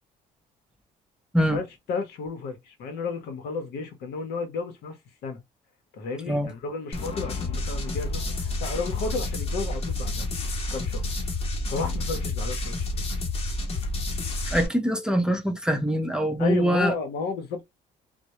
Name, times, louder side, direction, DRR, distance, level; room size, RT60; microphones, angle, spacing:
voice 1, 1.5-5.0 5.2-5.4 5.9-10.3 10.7-11.0 11.7-13.0 16.4-17.6, left 4 dB, 75° left, 0.8 m, -32 dB
sound 1, 6.9-14.7, left 2 dB, 35° left, 0.8 m, -29 dB
voice 2, 14.5-16.9, equal, 5° right, 0.5 m, -24 dB
2.2 x 2.0 x 2.8 m
cardioid pair, 110°, 17 cm